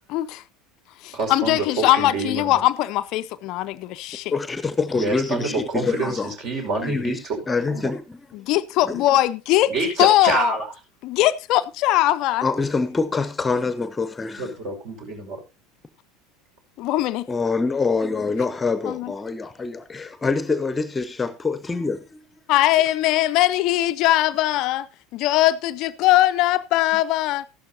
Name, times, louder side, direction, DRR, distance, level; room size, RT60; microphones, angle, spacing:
voice 1, 0.1-0.4 1.0-4.3 8.3-9.7 10.0-10.6 11.0-12.5 16.8-17.3 18.8-19.1 22.5-24.9 25.1-27.5, left 15 dB, 50° left, 0.5 m, -20 dB
voice 2, 1.1-2.6 4.9-7.9 9.7-10.7 14.4-15.4, right 3 dB, 50° right, 5.2 m, -27 dB
voice 3, 4.3-6.3 6.8-8.2 8.8-9.0 12.4-14.5 17.3-22.2, left 4 dB, 15° left, 0.9 m, -25 dB
14.5 x 12.0 x 2.8 m
figure-of-eight pair, 75°, 0 cm